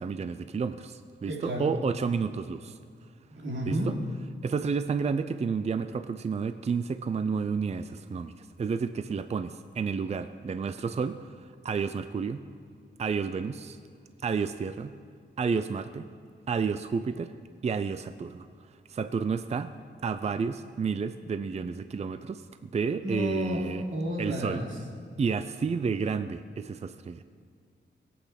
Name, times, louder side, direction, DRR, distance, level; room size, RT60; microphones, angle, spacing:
voice 1, 0.0-2.8 3.7-4.0 4.4-12.4 13.0-13.8 14.2-14.9 15.4-16.0 16.5-17.3 17.6-18.5 18.9-19.7 20.0-23.8 24.2-24.6 25.2-27.2, right 5 dB, 35° right, 11 dB, 0.4 m, -31 dB
voice 2, 1.3-1.7 3.3-3.9 23.0-23.6 23.9-24.7, equal, 90° right, -3 dB, 3.3 m, -31 dB
20.5 x 8.5 x 5.8 m, 2.1 s
wide cardioid pair, 135°, 19 cm